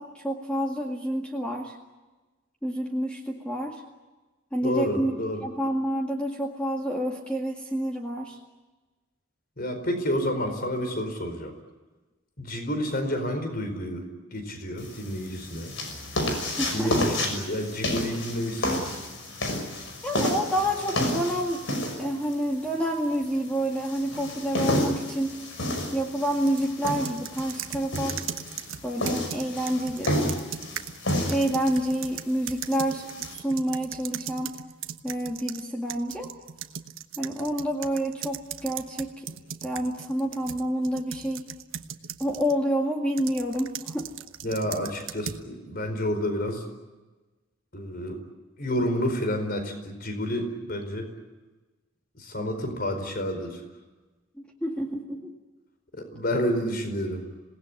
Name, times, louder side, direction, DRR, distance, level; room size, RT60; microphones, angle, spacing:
voice 1, 0.0-1.8 2.6-3.8 4.5-5.1 5.4-8.4 16.6-17.1 20.0-25.4 25.9-28.2 28.8-30.1 31.3-33.1 33.3-34.6 35.0-36.3 37.2-41.5 42.2-44.1 54.6-55.3, equal, 5° left, 0 dB, 2.1 m, -28 dB
voice 2, 4.6-5.4 9.6-11.5 12.4-14.0 14.3-15.7 16.7-18.9 44.4-46.6 47.7-48.2 48.6-51.1 52.1-53.6 55.9-57.2, equal, 45° left, 6 dB, 4.7 m, -29 dB
sound 1, 14.8-33.3, left 1 dB, 65° left, 6.1 m, -31 dB
sound 2, 26.5-35.6 35.9-42.6 43.2-45.5, right 9 dB, 80° right, 1.2 m, -38 dB
27.0 x 19.0 x 9.8 m, 1.2 s
head